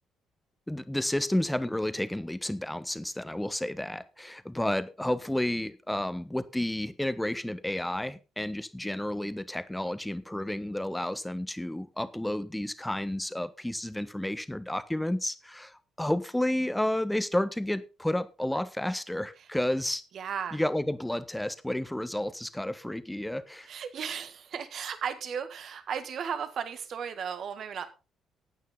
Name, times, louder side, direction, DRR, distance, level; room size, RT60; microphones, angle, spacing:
voice 1, 0.7-20.0 20.5-23.7, left 1 dB, 10° left, 13 dB, 1.3 m, -31 dB
voice 2, 20.1-20.6 23.7-27.9, right 7 dB, 60° right, 10 dB, 1.9 m, -35 dB
15.0 x 9.2 x 3.8 m, 0.30 s
hypercardioid pair, 50°, 0 cm